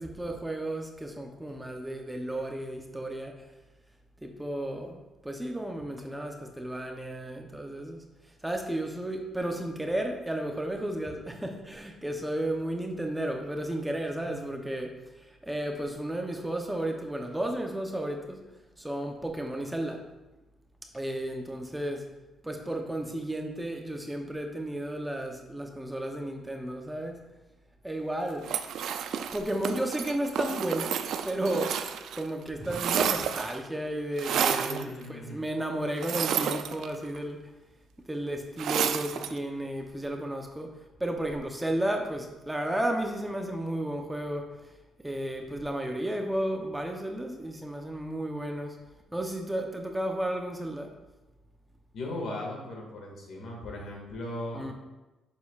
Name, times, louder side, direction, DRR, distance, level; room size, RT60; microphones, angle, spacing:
voice 1, 0.0-3.4 4.2-8.0 8.4-18.4 18.8-20.0 20.9-22.1 22.4-27.2 27.8-28.5 29.3-31.0 31.2-37.5 38.1-40.7 41.0-44.6 45.0-48.8 49.1-50.9 54.5-54.7, right 1 dB, 10° right, 3 dB, 0.7 m, -33 dB
sound 1, 28.4-32.2 32.5-33.7 34.2-34.8 36.0-37.2 38.6-39.4, right 8 dB, 75° right, 0.4 m, -30 dB
voice 2, 34.4-35.4 51.9-54.7, left 1 dB, 65° left, -1 dB, 1.9 m, -38 dB
6.8 x 6.6 x 2.4 m, 1.1 s
cardioid pair, 90°, 0 cm